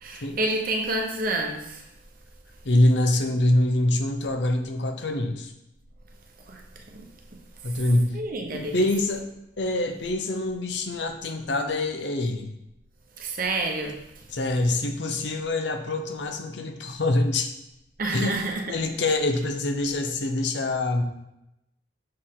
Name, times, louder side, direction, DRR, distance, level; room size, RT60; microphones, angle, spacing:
voice 1, 0.0-1.8 6.5-6.6 6.9-7.0 8.1-8.7 13.2-14.0 18.0-18.6, right 2 dB, 45° right, 2 dB, 0.9 m, -28 dB
voice 2, 2.6-5.5 7.6-8.2 8.5-9.2 9.6-12.5 14.3-17.5 18.1-21.0, left 1 dB, 65° left, 6 dB, 0.7 m, -25 dB
6.4 x 4.4 x 3.7 m, 0.87 s
head